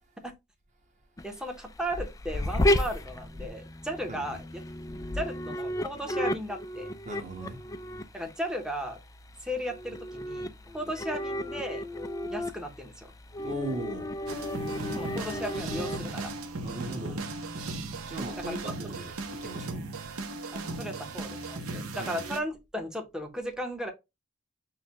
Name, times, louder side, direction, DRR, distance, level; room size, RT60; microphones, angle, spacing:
sound 1, 1.2-16.0, left 1 dB, 15° left, 0.3 m, -33 dB
voice 1, 1.2-4.5 5.1-6.9 8.1-9.0 9.4-11.8 12.3-13.1 14.9-16.3 18.5-18.7 20.5-23.9, equal, 5° right, 0.8 m, -36 dB
voice 2, 7.0-7.6 13.4-14.1 16.6-17.3 18.0-19.9 22.0-22.2, right 1 dB, 35° right, 1.2 m, -38 dB
sound 2, 14.3-22.4, right 2 dB, 75° right, 0.8 m, -37 dB
6.3 x 2.2 x 2.9 m
head